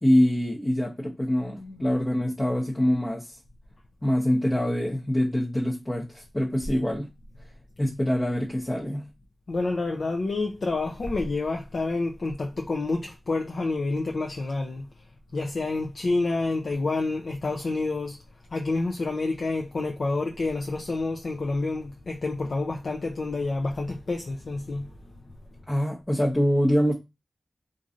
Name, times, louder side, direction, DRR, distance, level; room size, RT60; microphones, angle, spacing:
voice 1, 0.0-3.4 4.0-7.1 7.8-9.1 25.7-26.9, equal, 20° left, 0.6 m, -24 dB
voice 2, 9.5-14.9 15.3-18.2 18.5-24.9, left 3 dB, 65° left, 0.4 m, -28 dB
3.0 x 2.5 x 2.4 m
wide cardioid pair, 85°, 0 cm